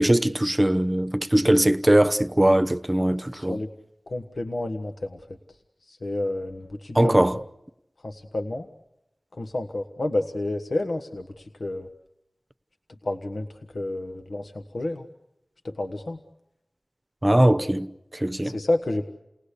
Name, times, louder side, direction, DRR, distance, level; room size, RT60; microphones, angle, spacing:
voice 1, 0.0-3.6 6.9-7.4 17.2-18.6, right 1 dB, 25° right, 0.9 m, -20 dB
voice 2, 3.3-3.7 4.1-5.2 5.9-7.2 8.0-8.7 9.3-11.9 13.0-15.1 15.6-16.2 18.4-19.0, left 2 dB, 85° left, 1.3 m, -30 dB
29.5 x 18.5 x 8.4 m
wide cardioid pair, 50°, 0 cm